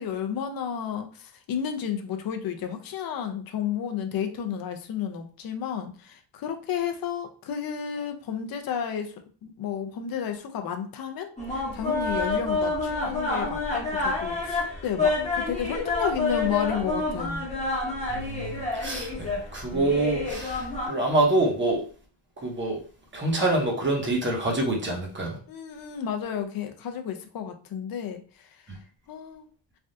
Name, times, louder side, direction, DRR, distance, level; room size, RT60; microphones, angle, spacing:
voice 1, 0.0-17.5 25.5-28.8 29.1-29.5, left 8 dB, 50° left, 6 dB, 0.5 m, -32 dB
sound 1, 11.4-20.9, left 3 dB, 15° left, 0.9 m, -28 dB
voice 2, 18.1-21.8 22.4-22.8 23.1-25.4, right 2 dB, 25° right, -1 dB, 0.9 m, -26 dB
3.3 x 2.3 x 2.6 m, 0.40 s
wide cardioid pair, 155°, 49 cm